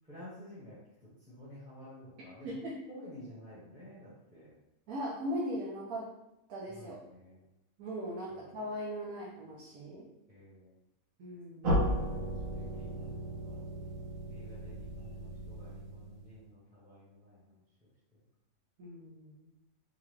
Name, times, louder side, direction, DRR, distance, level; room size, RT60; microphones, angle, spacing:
voice 1, 0.0-0.8 1.3-2.5 2.9-4.5 6.7-7.4 8.3-8.5 10.3-10.7 12.5-13.6 14.3-17.6, equal, 5° right, -10 dB, 0.9 m, -51 dB
voice 2, 2.4-2.8 4.9-6.1 6.5-7.0 7.8-10.0 11.2-11.8 18.8-19.5, equal, 90° right, -5 dB, 1.2 m, -39 dB
sound 1, 11.6-16.4, equal, 75° right, 1.5 m, -35 dB
3.7 x 3.0 x 3.2 m, 0.91 s
omnidirectional pair, 1.4 m